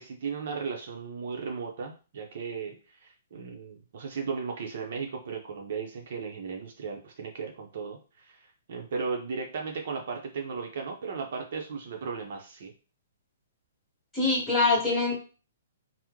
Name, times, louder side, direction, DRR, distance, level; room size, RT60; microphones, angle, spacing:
voice 1, 0.0-2.7 3.0-8.0 8.2-8.4 8.7-12.7, right 5 dB, 55° right, 2 dB, 0.7 m, -36 dB
voice 2, 14.1-15.1, left 3 dB, 5° left, -7 dB, 1.3 m, -24 dB
3.0 x 2.1 x 3.6 m, 0.34 s
hypercardioid pair, 160°, 0 cm